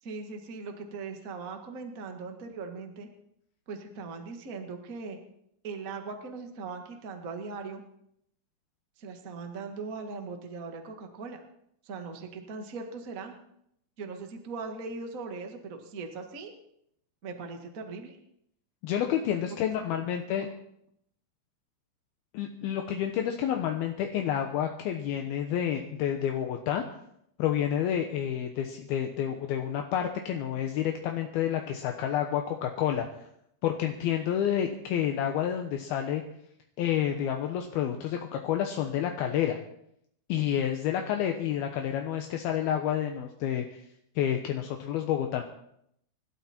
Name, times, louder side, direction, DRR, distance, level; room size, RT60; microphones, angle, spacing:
voice 1, 0.0-3.1 3.7-5.2 5.6-7.8 9.0-11.4 11.8-13.4 14.0-16.5 17.2-18.2 19.8-20.0 20.4-20.5, right 4 dB, 35° right, 4 dB, 1.3 m, -39 dB
voice 2, 18.8-20.5 22.3-26.8 27.4-33.1 33.6-36.2 36.8-39.6 40.3-43.8 44.2-45.4, left 10 dB, 75° left, 4 dB, 2.8 m, -29 dB
26.5 x 12.5 x 4.4 m, 0.74 s
omnidirectional pair, 4.6 m